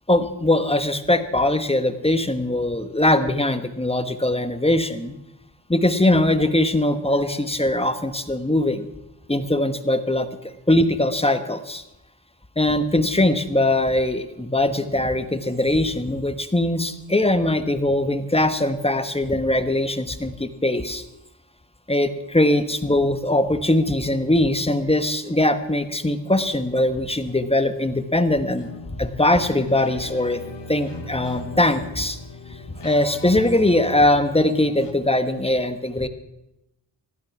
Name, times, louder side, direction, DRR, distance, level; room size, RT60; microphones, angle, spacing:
voice 1, 0.1-5.2 5.7-8.9 9.3-11.8 12.6-21.0 21.9-28.7 29.0-30.4 30.7-32.2 32.8-36.1, left 1 dB, 15° left, 9 dB, 1.2 m, -21 dB
sound 1, 28.6-34.9, left 3 dB, 85° left, 1.4 m, -39 dB
15.0 x 12.0 x 5.9 m, 0.89 s
cardioid pair, 55°, 41 cm